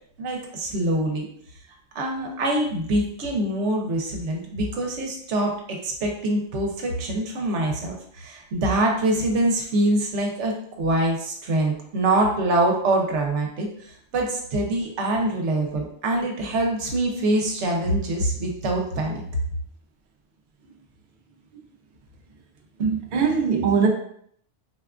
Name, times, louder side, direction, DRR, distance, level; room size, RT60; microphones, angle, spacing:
voice 1, 0.2-1.3 1.9-19.2, right 1 dB, 75° right, 1 dB, 1.0 m, -24 dB
voice 2, 22.8-23.9, right 5 dB, 55° right, 1 dB, 0.6 m, -21 dB
4.2 x 2.3 x 2.4 m, 0.65 s
omnidirectional pair, 1.2 m